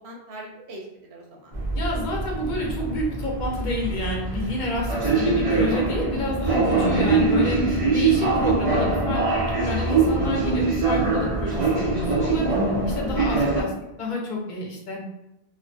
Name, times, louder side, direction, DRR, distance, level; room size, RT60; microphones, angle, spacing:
voice 1, 0.0-1.5, equal, 85° right, -1 dB, 0.9 m, -42 dB
sound 1, 1.5-13.6, right 3 dB, 45° right, 0.4 m, -23 dB
voice 2, 1.7-12.4 12.9-13.7 14.0-15.0, left 1 dB, 55° left, -1 dB, 0.7 m, -29 dB
2.5 x 2.1 x 2.5 m, 0.91 s
omnidirectional pair, 1.1 m